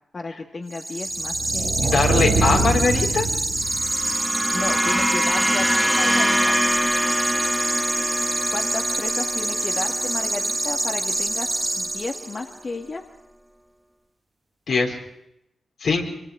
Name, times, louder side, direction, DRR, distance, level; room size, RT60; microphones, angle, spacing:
voice 1, 0.1-1.9 4.5-6.6 8.5-11.5 11.8-13.0, left 3 dB, 50° left, 2 dB, 1.6 m, -33 dB
sound 1, 0.7-12.5, right 2 dB, 25° right, 0.9 m, -26 dB
sound 2, 1.2-4.2, right 3 dB, 80° right, 2.8 m, -24 dB
voice 2, 1.8-3.3 14.7-15.0 15.8-16.0, left 4 dB, 75° left, 0 dB, 4.2 m, -21 dB
sound 3, 3.6-12.1, equal, 5° right, 1.1 m, -25 dB
24.5 x 23.5 x 4.8 m, 0.80 s
supercardioid pair, 45°, 0 cm